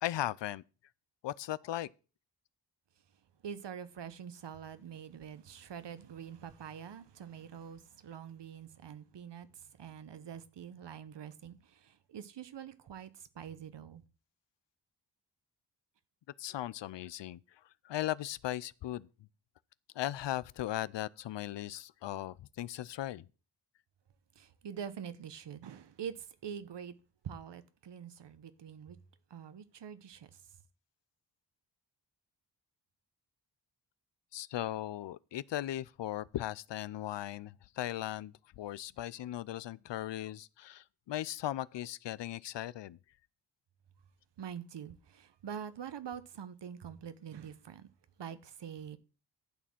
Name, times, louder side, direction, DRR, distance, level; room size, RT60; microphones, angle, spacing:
voice 1, 0.0-0.6 1.2-1.9 16.4-17.4 17.8-19.1 20.0-23.3 34.3-43.0, left 13 dB, 75° left, 0.6 m, -38 dB
voice 2, 3.4-14.0 24.3-26.9 27.2-29.0 29.3-30.4 44.4-47.9 48.2-49.0, right 8 dB, 70° right, 1.1 m, -45 dB
11.5 x 4.3 x 7.3 m
wide cardioid pair, 90°, 43 cm